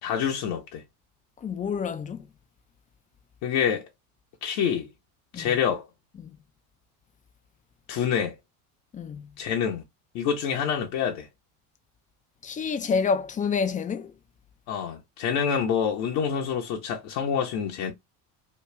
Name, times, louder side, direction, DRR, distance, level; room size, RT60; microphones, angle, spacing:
voice 1, 0.0-0.8 3.4-3.9 4.4-4.9 5.3-5.9 7.9-8.3 9.4-9.8 10.1-11.3 14.7-17.9, left 7 dB, 65° left, 0.9 m, -27 dB
voice 2, 1.4-2.3 5.3-5.6 6.2-6.3 8.9-9.3 12.4-14.1, left 5 dB, 20° left, 0.3 m, -28 dB
3.1 x 2.4 x 3.2 m
hypercardioid pair, 85°, 45 cm